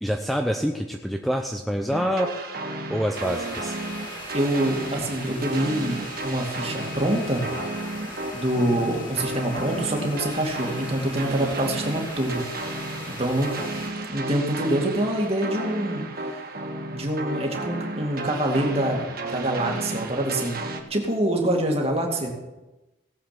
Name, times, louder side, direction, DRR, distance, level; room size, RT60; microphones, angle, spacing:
voice 1, 0.0-2.4 2.9-3.8, equal, ahead, 3 dB, 0.6 m, -26 dB
sound 1, 1.9-20.8, right 2 dB, 50° right, 1.3 m, -33 dB
sound 2, 3.1-13.9, left 3 dB, 45° left, 2.9 m, -40 dB
voice 2, 4.3-6.0 6.2-7.5 8.0-12.4 12.8-13.5 13.8-16.1 16.9-20.6 20.9-22.3, right 1 dB, 30° right, 1 dB, 2.3 m, -25 dB
18.0 x 7.9 x 6.0 m, 1.0 s
head